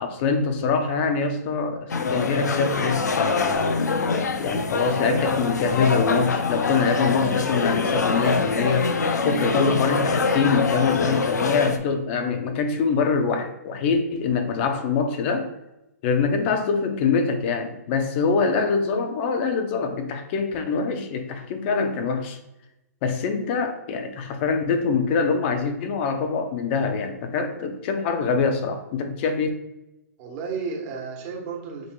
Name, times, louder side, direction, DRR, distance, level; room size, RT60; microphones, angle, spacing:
voice 1, 0.0-3.8 4.4-8.9 9.2-15.5 16.0-22.4 23.0-29.5, left 5 dB, 45° left, 6 dB, 0.7 m, -24 dB
sound 1, 1.9-11.8, left 4 dB, 90° left, 0.4 m, -24 dB
voice 2, 30.2-31.9, right 5 dB, 40° right, 0 dB, 1.2 m, -33 dB
6.3 x 3.0 x 2.2 m, 0.91 s
hypercardioid pair, 125°, 9 cm